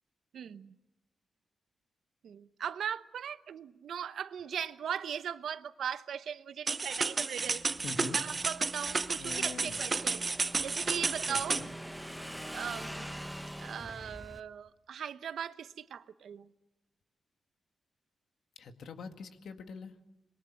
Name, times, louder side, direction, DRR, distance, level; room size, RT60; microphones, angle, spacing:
voice 1, 0.3-0.7 2.2-7.7 8.1-10.2 10.6-11.6 12.5-13.2 13.6-16.5, right 8 dB, 85° right, 0.9 m, -39 dB
sound 1, 6.7-11.7, right 4 dB, 35° right, 0.8 m, -32 dB
Motorcycle / Engine, 7.4-14.4, equal, ahead, 1.1 m, -45 dB
voice 2, 7.8-8.2 9.2-9.8 11.3-11.7 18.6-19.9, left 5 dB, 80° left, 2.0 m, -44 dB
26.0 x 22.5 x 7.5 m
wide cardioid pair, 115°, 0 cm